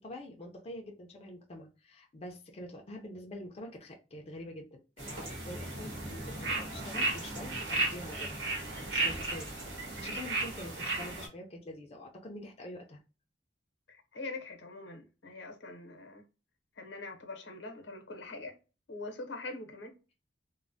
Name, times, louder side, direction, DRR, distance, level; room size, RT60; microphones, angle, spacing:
voice 1, 0.0-9.5 10.0-13.0, left 1 dB, 35° left, 0.4 m, -46 dB
sound 1, 5.0-11.3, right 2 dB, 90° right, 1.3 m, -35 dB
voice 2, 13.9-16.2 16.8-18.5 18.9-19.9, left 2 dB, 90° left, 0.8 m, -43 dB
3.1 x 2.1 x 2.5 m
head